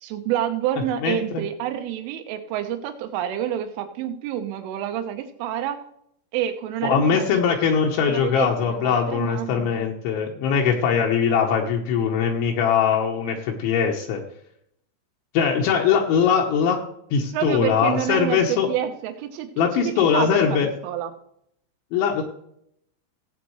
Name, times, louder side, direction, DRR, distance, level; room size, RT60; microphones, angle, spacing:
voice 1, 0.0-5.8 6.3-7.3 8.1-9.7 17.3-21.1, right 10 dB, 80° right, 7 dB, 3.6 m, -28 dB
voice 2, 1.0-1.4 6.8-14.2 15.3-16.8 17.1-18.7 19.6-20.7 21.9-22.2, left 7 dB, 75° left, 0 dB, 3.2 m, -21 dB
17.0 x 8.4 x 3.2 m, 0.72 s
omnidirectional pair, 5.7 m